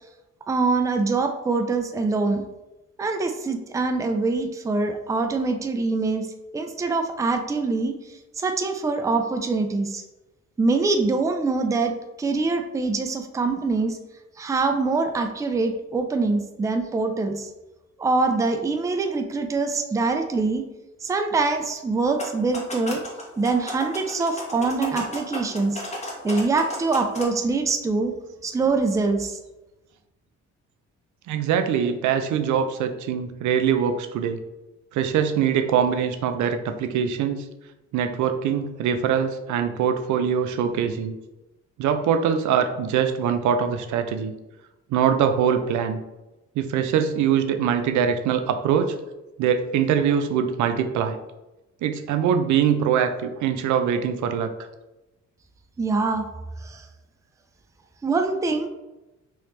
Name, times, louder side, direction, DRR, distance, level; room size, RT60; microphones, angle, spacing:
voice 1, 0.5-2.4 3.0-6.3 6.5-8.0 8.4-10.0 10.6-14.0 14.4-17.5 18.0-20.7 21.0-23.0 23.4-25.8 26.2-28.1 28.4-29.4 55.8-56.3 56.6-56.8 58.0-58.7, right 3 dB, 10° right, 5 dB, 0.3 m, -24 dB
sound 1, 22.0-27.2, left 1 dB, 20° left, 1.1 m, -35 dB
voice 2, 31.3-34.4 34.9-37.5 37.9-41.2 41.8-44.3 44.9-46.0 46.6-48.9 49.4-51.2 51.8-54.5, right 8 dB, 75° right, 7 dB, 0.4 m, -23 dB
3.1 x 2.9 x 3.1 m, 1.0 s
cardioid pair, 90°, 30 cm